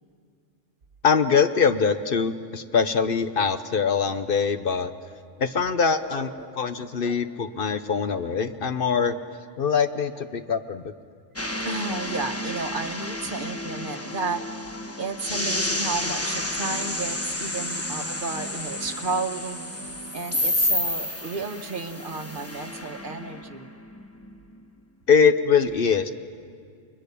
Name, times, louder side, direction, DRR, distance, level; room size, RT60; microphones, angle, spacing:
voice 1, 1.0-4.9 5.4-9.2 9.6-10.8 25.1-26.1, left 6 dB, 55° left, 10 dB, 0.9 m, -23 dB
voice 2, 6.0-6.6 7.0-7.2 11.6-14.4 15.0-19.6 20.1-23.7, right 4 dB, 50° right, 7 dB, 1.2 m, -32 dB
sound 1, 11.4-24.4, left 1 dB, 15° left, 1.1 m, -30 dB
29.5 x 22.0 x 6.9 m, 2.2 s
omnidirectional pair, 1.2 m